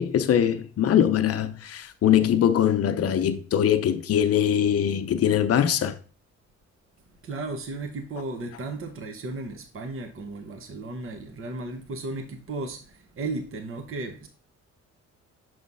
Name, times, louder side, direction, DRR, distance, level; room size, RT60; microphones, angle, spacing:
voice 1, 0.0-6.0, left 9 dB, 50° left, 0.7 m, -22 dB
voice 2, 7.2-14.3, right 2 dB, 45° right, 1.0 m, -35 dB
6.0 x 3.1 x 5.4 m
cardioid pair, 90°, 30 cm